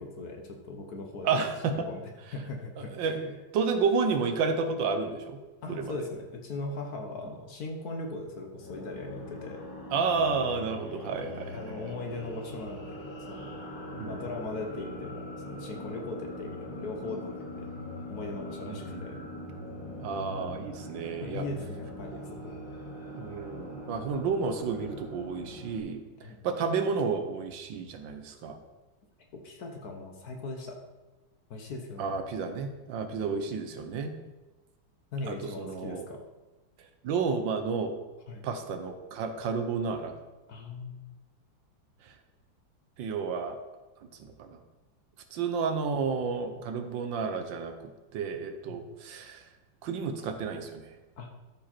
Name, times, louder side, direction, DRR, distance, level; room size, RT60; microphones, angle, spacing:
voice 1, 0.0-1.3 1.9-2.0 2.3-3.3 5.6-9.6 11.5-13.0 13.3-13.6 14.1-17.6 18.1-19.1 21.2-22.6 26.2-26.4 29.3-30.8 31.5-32.1 33.1-33.2 35.1-36.2 38.3-38.4 40.5-41.1 48.7-48.8 51.2-51.3, left 2 dB, 55° left, 2 dB, 1.4 m, -39 dB
voice 2, 1.2-1.9 2.9-5.4 5.7-5.9 9.9-11.8 13.9-14.2 18.7-19.3 20.0-21.4 23.1-26.0 26.4-28.6 32.0-34.1 35.3-36.1 37.0-37.9 38.4-40.1 42.0-42.1 43.0-43.6 44.2-44.6 45.3-47.7 48.1-49.4 49.8-50.9, right 5 dB, 70° right, 7 dB, 1.5 m, -31 dB
sound 1, 8.5-25.8, left 1 dB, 85° left, 2.6 m, -42 dB
13.0 x 5.1 x 4.3 m, 1.1 s
omnidirectional pair, 2.2 m